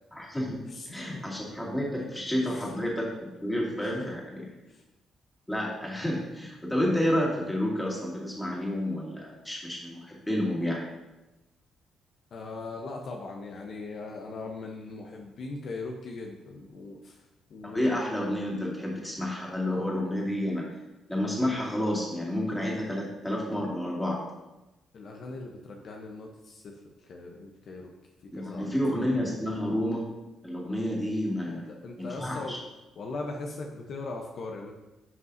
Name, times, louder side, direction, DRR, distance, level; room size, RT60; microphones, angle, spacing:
voice 1, 0.1-0.6 0.9-3.1 3.4-4.5 5.5-10.8 17.6-20.6 21.1-24.2 28.3-30.0 30.4-31.6 32.0-32.6, left 1 dB, 10° left, -4 dB, 2.5 m, -30 dB
voice 2, 0.6-1.1 2.0-2.1 2.4-2.8 3.8-3.9 4.7-4.8 12.3-17.2 17.5-17.8 24.9-26.7 27.1-27.9 28.3-28.7 31.5-32.6 33.0-34.7, left 3 dB, 60° left, 1 dB, 0.9 m, -39 dB
11.0 x 5.4 x 2.7 m, 1.0 s
cardioid pair, 90°, 0 cm